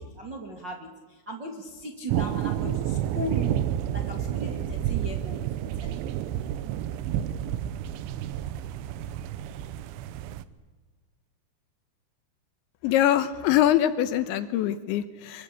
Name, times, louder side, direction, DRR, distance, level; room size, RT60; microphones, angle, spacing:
voice 1, 0.0-3.6 3.9-5.4 5.8-6.2, equal, 40° right, 2 dB, 1.6 m, -37 dB
sound 1, 2.1-10.5, right 11 dB, 80° right, 3.2 m, -30 dB
voice 2, 12.8-15.4, left 12 dB, 75° left, 12 dB, 3.1 m, -23 dB
25.0 x 23.0 x 8.6 m, 1.3 s
omnidirectional pair, 5.7 m